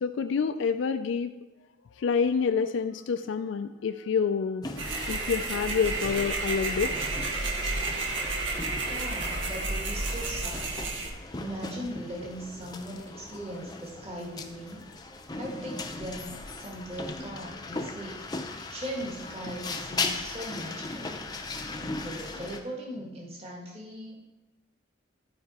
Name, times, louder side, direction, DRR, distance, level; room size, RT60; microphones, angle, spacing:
voice 1, 0.0-1.3 2.0-4.6 5.1-7.1, left 6 dB, 80° left, 9 dB, 0.3 m, -28 dB
sound 1, 4.6-22.6, left 3 dB, 20° left, 0.6 m, -38 dB
sound 2, 4.8-11.1, right 2 dB, 85° right, 1.1 m, -31 dB
voice 2, 7.9-8.6 8.8-10.8 11.3-14.8 15.3-18.3 18.7-21.2 21.6-24.2, equal, 30° right, -2 dB, 1.6 m, -39 dB
12.0 x 4.8 x 4.2 m, 1.1 s
head